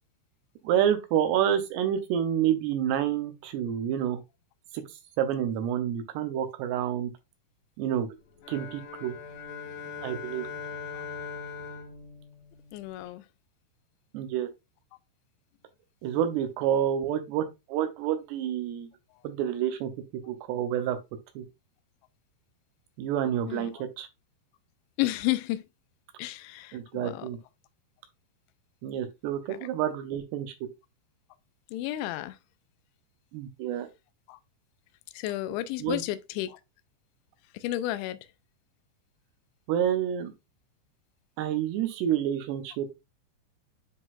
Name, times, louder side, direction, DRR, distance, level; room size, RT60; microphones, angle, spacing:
voice 1, 0.6-4.2 4.7-4.8 5.2-7.1 7.8-8.1 8.5-9.1 10.0-10.5 14.1-14.5 16.0-18.9 19.2-19.9 20.3-21.0 21.4-21.5 23.0-24.1 26.7-27.4 28.8-30.5 33.3-33.9 35.8-36.0 39.7-40.3 41.4-42.9, right 10 dB, 75° right, 2.7 m, -28 dB
sound 1, 8.4-13.1, left 5 dB, 65° left, 3.2 m, -40 dB
voice 2, 12.7-13.2 23.5-23.8 25.0-25.6 26.2-27.3 29.5-29.6 31.7-32.4 34.3-34.4 35.1-36.6 37.5-38.2, left 15 dB, 85° left, 2.9 m, -32 dB
10.0 x 3.9 x 2.4 m
omnidirectional pair, 5.4 m